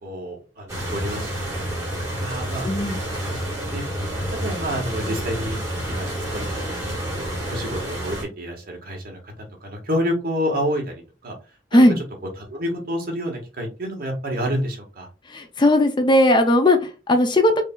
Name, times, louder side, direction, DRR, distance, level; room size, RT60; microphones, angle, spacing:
voice 1, 0.0-1.6 2.2-2.7 3.6-3.8 4.4-5.6 5.9-7.2 7.5-11.3 11.7-11.8 12.4-15.1, equal, 55° right, 1 dB, 1.4 m, -29 dB
sound 1, 0.7-8.2, equal, 15° right, 1.7 m, -29 dB
voice 2, 2.6-3.0 11.7-12.0 15.3-17.6, left 1 dB, 25° left, 6 dB, 0.5 m, -17 dB
5.0 x 2.8 x 2.3 m, 0.31 s
head